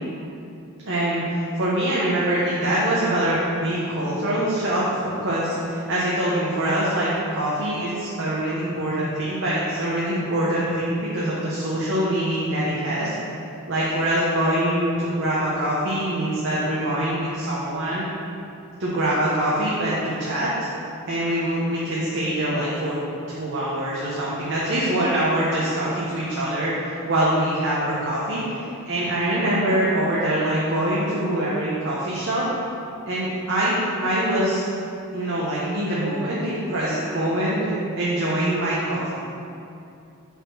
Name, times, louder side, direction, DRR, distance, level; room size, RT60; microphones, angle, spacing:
voice 1, 0.8-13.1 13.7-18.1 18.8-20.7 21.1-23.0 23.3-32.4 33.1-34.7 35.1-39.1, right 1 dB, 60° right, -7 dB, 1.0 m, -24 dB
5.4 x 4.3 x 6.1 m, 2.6 s
head